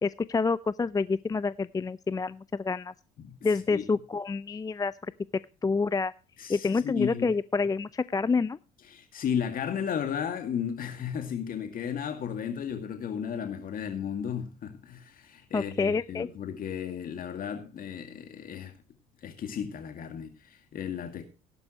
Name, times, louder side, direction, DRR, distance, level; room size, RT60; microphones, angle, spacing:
voice 1, 0.0-2.9 3.4-5.1 5.6-6.1 6.5-8.6 15.5-16.3, left 4 dB, 20° left, 0.5 m, -28 dB
voice 2, 3.2-3.9 6.4-7.3 8.9-18.7 19.2-21.2, left 8 dB, 50° left, 2.2 m, -34 dB
17.0 x 10.5 x 3.0 m
hypercardioid pair, 60°, 18 cm